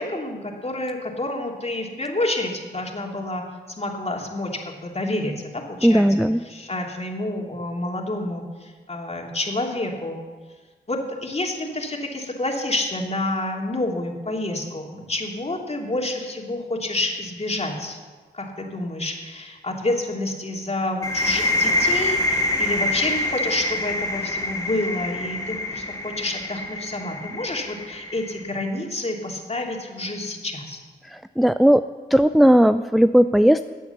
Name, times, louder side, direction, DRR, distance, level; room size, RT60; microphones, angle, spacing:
voice 1, 0.0-3.4 3.8-10.2 10.9-18.0 18.3-30.8, left 2 dB, 35° left, 1 dB, 2.9 m, -28 dB
voice 2, 5.8-6.4 31.4-31.8 32.1-33.6, equal, ahead, 11 dB, 0.4 m, -16 dB
sound 1, 21.0-28.6, left 1 dB, 15° left, 3.2 m, -26 dB
13.5 x 8.4 x 7.1 m, 1.4 s
cardioid pair, 50°, 19 cm